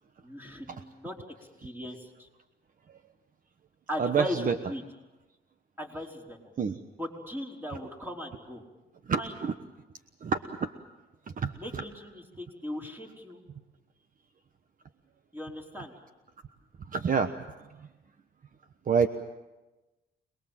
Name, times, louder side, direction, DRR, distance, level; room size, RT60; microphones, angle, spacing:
voice 1, 0.2-1.2 1.6-2.3 3.9-4.8 5.8-6.5 7.0-8.6 9.2-9.3 11.5-13.4 15.3-15.9, left 1 dB, 10° right, 0 dB, 4.8 m, -38 dB
voice 2, 4.0-4.6 6.6-6.8 9.1-9.5 10.2-10.7 11.4-11.5 16.9-17.3 17.8-17.9 18.9-19.1, right 6 dB, 45° right, 9 dB, 1.2 m, -27 dB
26.5 x 21.0 x 7.6 m, 1.1 s
cardioid pair, 90°, 20 cm